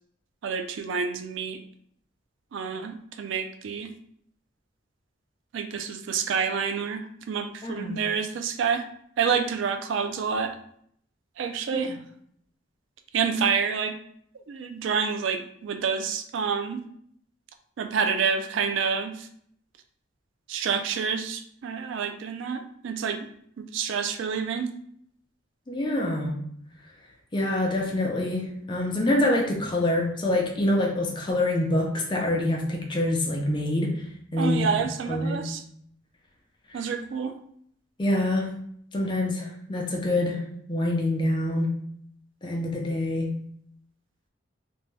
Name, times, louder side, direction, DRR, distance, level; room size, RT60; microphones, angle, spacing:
voice 1, 0.4-1.6 2.5-3.9 5.5-8.9 9.2-10.6 11.4-12.0 13.1-14.0 14.5-16.8 17.8-19.3 20.5-23.3 23.6-24.7 34.4-35.6 36.7-37.3, right 6 dB, 75° right, 6 dB, 0.3 m, -28 dB
voice 2, 7.6-8.0 11.7-11.8 25.7-26.4 27.3-34.0 34.3-34.6 35.1-35.5 38.0-38.5 38.9-41.8 42.4-43.4, left 1 dB, 25° left, 0 dB, 0.5 m, -26 dB
2.6 x 2.2 x 3.1 m, 0.66 s
head